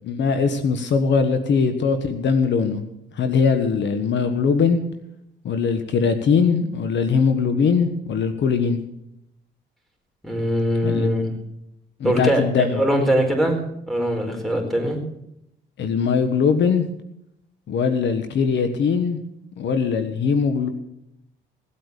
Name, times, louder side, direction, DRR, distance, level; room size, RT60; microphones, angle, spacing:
voice 1, 0.0-2.8 3.1-4.8 5.4-8.8 10.8-11.1 12.0-12.8 15.8-16.9 17.7-19.2 19.6-20.7, left 5 dB, 65° left, 9 dB, 1.4 m, -21 dB
voice 2, 10.2-11.3 12.0-13.6 13.9-15.0, equal, ahead, 3 dB, 4.5 m, -22 dB
17.5 x 8.7 x 6.8 m, 0.80 s
cardioid pair, 90°, 20 cm